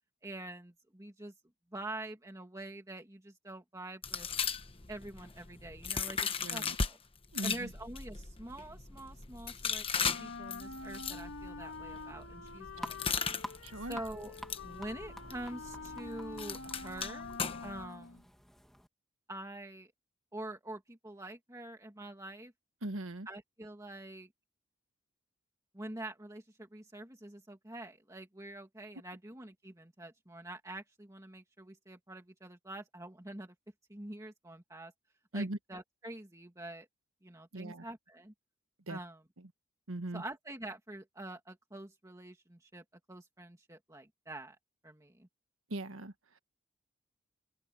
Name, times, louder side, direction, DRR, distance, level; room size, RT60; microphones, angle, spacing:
voice 1, 0.2-1.3 1.7-4.3 4.9-7.0 7.4-13.2 13.7-14.4 14.6-18.2 19.3-19.9 20.3-22.5 23.3-24.3 25.7-33.5 33.9-34.9 35.3-36.9 37.2-38.3 38.9-39.2 40.1-44.6 44.8-45.3, right 1 dB, 15° right, 2.1 m, -46 dB
sound 1, 4.0-6.9 7.3-17.9, left 6 dB, 25° left, 1.1 m, -38 dB
voice 2, 6.4-6.8 7.3-7.7 13.0-13.1 13.6-14.0 22.8-23.3 35.3-35.6 37.5-37.8 38.9-39.0 39.9-40.2 45.7-46.1, right 1 dB, 85° right, 1.5 m, -39 dB
Wind instrument woodwind instrument, 10.1-18.2, left 3 dB, 75° left, 3.3 m, -47 dB
sound 2, 12.8-18.9, equal, ahead, 2.2 m, -50 dB
head